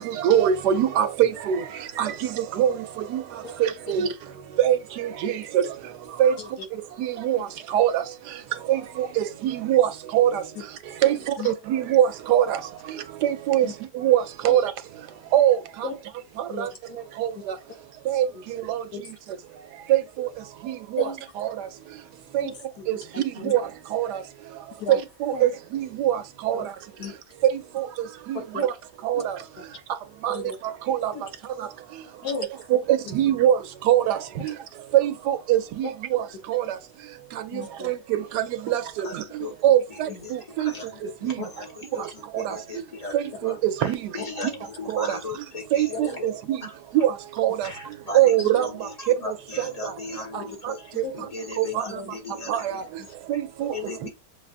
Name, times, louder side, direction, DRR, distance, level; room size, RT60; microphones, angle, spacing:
voice 1, 0.2-1.6 2.0-2.1 2.4-2.7 3.1-3.2 3.6-4.1 4.6-5.6 6.2-6.3 7.0-7.4 7.7-8.0 8.7-10.4 11.0-11.2 11.4-12.6 13.2-13.7 14.0-14.7 15.3-15.6 16.6-16.7 17.2-17.3 18.1-18.3 18.7-18.8 19.9-20.3 20.6-21.0 21.4-21.5 22.3-22.4 22.9-23.0 23.5-23.6 23.9-24.2 24.9-26.6 27.8-27.9 28.3-28.7 29.0-29.3 30.2-30.4 30.9-31.1 32.7-33.6 33.9-34.2 34.9-36.2 36.5-36.6 37.8-39.1 39.6-40.7 41.2-41.3 42.3-42.5 43.1-44.0 44.9-45.2 45.7-46.6 46.9-47.1 47.4-47.7 48.1-48.7 49.3-49.4 50.6-50.7 51.6-51.8 52.5-52.8 53.3-53.7, right 11 dB, 80° right, 1.2 m, -22 dB
voice 2, 16.5-17.0 18.3-18.4 18.9-19.0 21.0-21.2 22.4-23.5 24.8-25.0 25.3-25.5 26.5-26.6 27.0-27.1 28.5-28.6 29.6-29.7 30.3-30.6 31.1-31.2 32.2-33.3 37.5-37.9 40.1-40.2 41.4-41.5 46.0-46.2 48.4-48.5 50.3-50.4 51.0-51.2 51.9-52.2 53.0-53.1 53.6-53.7, left 4 dB, 70° left, 1.6 m, -36 dB
voice 3, 39.0-39.5 39.9-43.2 43.4-46.3 46.6-46.8 47.6-50.9 51.2-52.9 53.7-54.1, left 3 dB, 25° left, 1.0 m, -37 dB
6.6 x 2.4 x 2.4 m
omnidirectional pair, 1.8 m